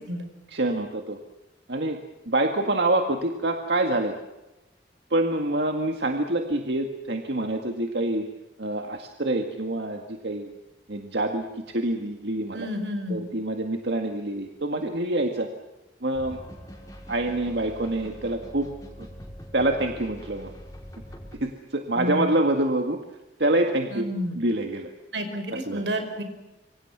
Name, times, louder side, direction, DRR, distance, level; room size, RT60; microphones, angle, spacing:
voice 1, 0.5-1.2 1.7-2.0 2.3-4.2 5.1-8.3 8.6-10.5 10.9-11.5 11.7-12.7 13.1-15.5 16.0-16.4 17.1-18.7 19.0-19.1 19.5-20.5 21.3-23.0 23.4-24.1 24.4-24.9 25.5-25.8, right 1 dB, 70° right, 4 dB, 1.9 m, -26 dB
voice 2, 12.5-13.2 21.9-22.3 23.9-24.4 25.1-26.2, equal, 90° right, 7 dB, 5.2 m, -30 dB
sound 1, 16.1-21.3, equal, 20° left, 5.4 m, -43 dB
27.5 x 24.0 x 6.1 m, 1.0 s
head